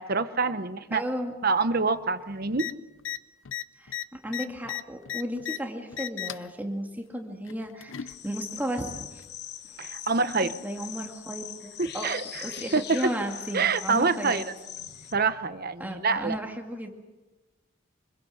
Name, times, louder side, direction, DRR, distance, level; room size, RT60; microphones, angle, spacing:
voice 1, 0.0-1.0 1.4-2.7 9.8-10.6 11.8-12.4 12.7-13.0 13.5-14.4 15.1-16.4, right 4 dB, 45° right, 11 dB, 0.9 m, -26 dB
voice 2, 0.9-1.3 3.8-9.2 10.4-12.1 12.4-14.4 15.8-16.9, equal, 10° right, 2 dB, 2.2 m, -34 dB
sound 1, 2.5-2.7 3.0-3.2 3.5-5.6 5.9-6.5 7.5-8.1 9.2-9.3, left 11 dB, 70° left, 0.6 m, -35 dB
sound 2, 8.1-15.1, left 10 dB, 50° left, 1.2 m, -41 dB
25.5 x 21.5 x 6.5 m, 1.2 s
head